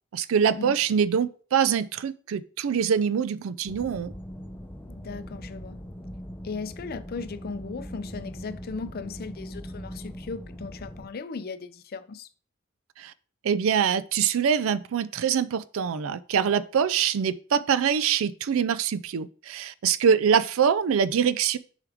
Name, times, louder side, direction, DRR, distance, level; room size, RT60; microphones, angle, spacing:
voice 1, 0.1-4.1 13.0-13.1 13.4-21.6, right 7 dB, 75° right, 0.4 m, -24 dB
sound 1, 3.6-11.1, equal, 10° left, 0.7 m, -40 dB
voice 2, 5.0-5.8 6.4-12.3 20.2-20.4, left 4 dB, 45° left, 0.5 m, -37 dB
7.0 x 4.6 x 3.5 m
head